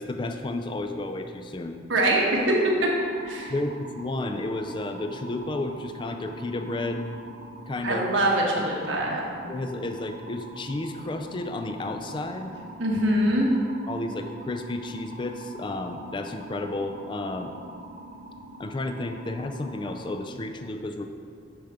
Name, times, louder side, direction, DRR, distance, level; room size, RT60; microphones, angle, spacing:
voice 1, 0.0-1.8 3.5-7.2 7.7-8.0 9.5-12.5 13.9-17.5 18.6-21.0, left 2 dB, 25° left, 6 dB, 0.3 m, -32 dB
voice 2, 1.9-2.9 3.2-3.5 7.8-9.2 12.8-13.5, right 1 dB, 80° right, -2 dB, 1.4 m, -23 dB
sound 1, 2.3-20.2, right 1 dB, 40° right, 1.0 m, -44 dB
6.9 x 5.0 x 5.7 m, 2.2 s
head